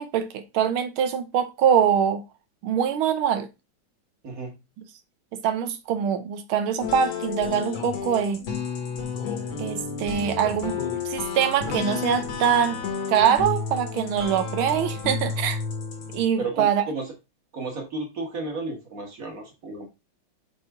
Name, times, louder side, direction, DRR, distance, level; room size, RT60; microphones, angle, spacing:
voice 1, 0.0-2.2 2.6-3.5 5.3-8.4 9.6-10.7 11.0-12.8 13.1-15.6 16.1-16.9, right 8 dB, 85° right, 1.7 m, -23 dB
voice 2, 4.2-4.5 16.4-17.1 17.5-19.9, right 3 dB, 45° right, 1.8 m, -33 dB
sound 1, 6.8-16.2, left 5 dB, 75° left, 2.2 m, -31 dB
6.7 x 4.3 x 3.6 m
omnidirectional pair, 2.2 m